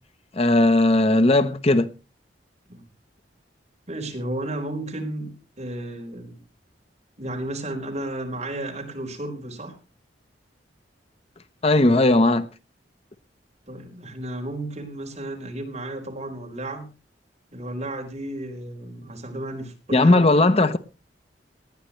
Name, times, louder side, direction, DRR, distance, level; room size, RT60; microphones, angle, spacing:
voice 1, 0.4-1.9 11.6-12.5 19.9-20.8, left 2 dB, 35° left, 0.8 m, -17 dB
voice 2, 3.9-6.4 7.2-9.8 13.7-16.9 17.5-20.2, right 1 dB, 40° right, 4.4 m, -33 dB
19.0 x 12.0 x 3.1 m
head